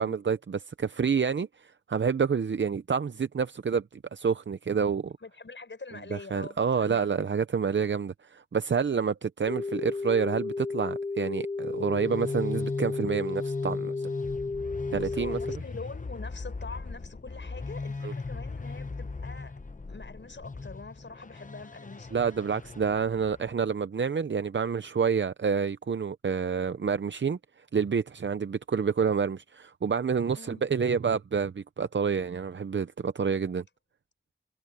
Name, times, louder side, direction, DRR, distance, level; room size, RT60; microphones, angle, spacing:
voice 1, 0.0-5.1 6.1-14.1 14.9-15.4 18.0-18.1 22.1-33.6, right 6 dB, 80° right, 0.6 m, -28 dB
voice 2, 5.2-7.1 14.9-19.6 19.9-22.1 30.3-30.6, left 3 dB, 85° left, 6.2 m, -44 dB
sound 1, 9.5-15.6, left 3 dB, 25° left, 0.4 m, -33 dB
sound 2, 11.7-23.5, left 3 dB, 45° left, 1.0 m, -38 dB
wide cardioid pair, 55°, 19 cm